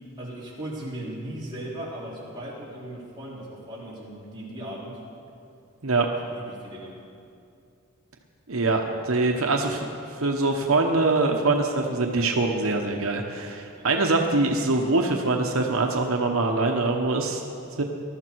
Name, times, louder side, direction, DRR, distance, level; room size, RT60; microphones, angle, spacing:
voice 1, 0.2-5.0 6.3-6.9 13.8-13.9, right 1 dB, 20° right, -7 dB, 3.6 m, -37 dB
voice 2, 8.5-9.9 10.2-17.4 17.7-17.8, right 3 dB, 80° right, 2 dB, 1.0 m, -23 dB
20.0 x 12.5 x 4.6 m, 2.5 s
head